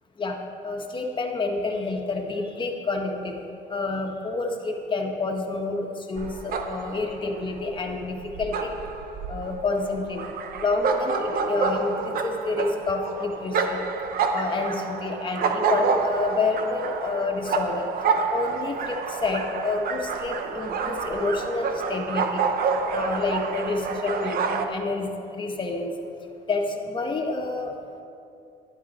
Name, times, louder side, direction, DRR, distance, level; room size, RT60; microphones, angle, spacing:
voice 1, 0.6-3.3 3.7-8.8 9.3-10.2 10.6-13.9 14.3-17.8 18.3-22.4 22.9-25.1 25.3-25.9 26.5-27.7, left 3 dB, 30° left, 2 dB, 1.5 m, -28 dB
sound 1, 6.2-24.7, right 5 dB, 60° right, 0.9 m, -28 dB
12.0 x 10.5 x 4.3 m, 2.6 s
cardioid pair, 110°, 17 cm